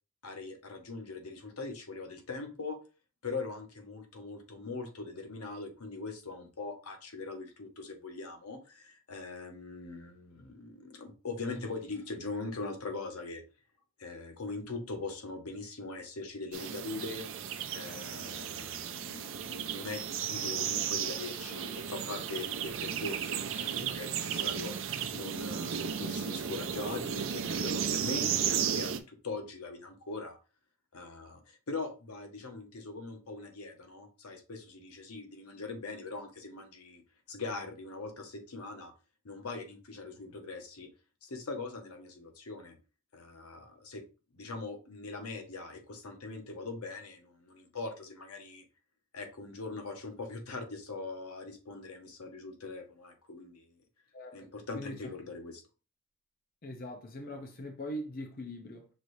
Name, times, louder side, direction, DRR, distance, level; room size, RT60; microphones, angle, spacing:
voice 1, 0.2-2.8 3.2-13.4 14.0-17.2 17.7-30.4 30.9-37.0 37.3-38.9 39.2-40.9 41.2-42.8 43.1-44.0 44.3-48.6 49.1-53.7 54.3-55.6, left 3 dB, 85° left, 0.9 m, -41 dB
sound 1, 16.5-29.0, right 8 dB, 60° right, 0.4 m, -34 dB
voice 2, 54.1-55.1 56.6-58.9, left 1 dB, 40° left, 0.6 m, -42 dB
6.0 x 3.2 x 2.7 m
head